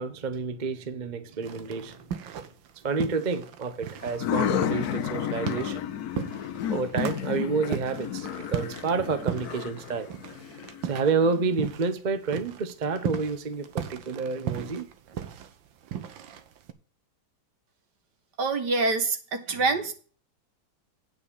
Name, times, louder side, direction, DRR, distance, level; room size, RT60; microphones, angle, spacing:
voice 1, 0.0-2.1 2.8-5.8 6.7-10.1 10.8-14.9, right 4 dB, 35° right, 0.7 m, -29 dB
sound 1, 1.4-2.7 3.0-12.0 12.3-16.7, right 9 dB, 75° right, 1.7 m, -36 dB
sound 2, 4.0-11.6, left 9 dB, 60° left, 1.1 m, -32 dB
voice 2, 18.4-19.9, right 3 dB, 60° right, 2.0 m, -26 dB
9.3 x 5.2 x 6.9 m
omnidirectional pair, 2.1 m